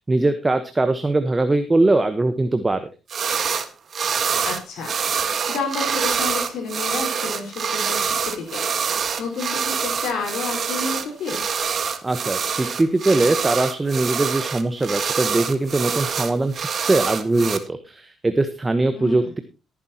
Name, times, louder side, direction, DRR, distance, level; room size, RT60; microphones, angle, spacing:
voice 1, 0.1-2.8 12.0-19.4, right 2 dB, 20° right, 9 dB, 1.2 m, -21 dB
sound 1, 3.1-3.7 3.9-17.6, right 6 dB, 50° right, 1.6 m, -25 dB
voice 2, 4.4-11.4 18.9-19.3, left 4 dB, 75° left, 2 dB, 4.7 m, -31 dB
18.0 x 9.9 x 3.0 m, 0.29 s
cardioid pair, 90°, 0 cm